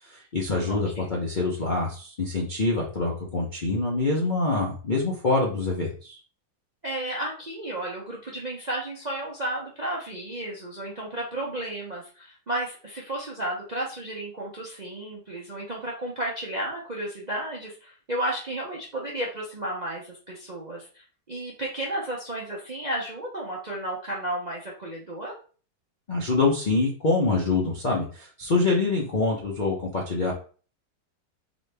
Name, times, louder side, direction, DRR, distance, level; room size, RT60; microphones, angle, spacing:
voice 1, 0.0-6.2 26.1-30.3, left 3 dB, 50° left, -2 dB, 0.5 m, -25 dB
voice 2, 0.5-1.1 6.8-25.4, right 1 dB, 45° right, -4 dB, 0.5 m, -33 dB
4.0 x 3.1 x 3.3 m, 0.40 s
omnidirectional pair, 1.9 m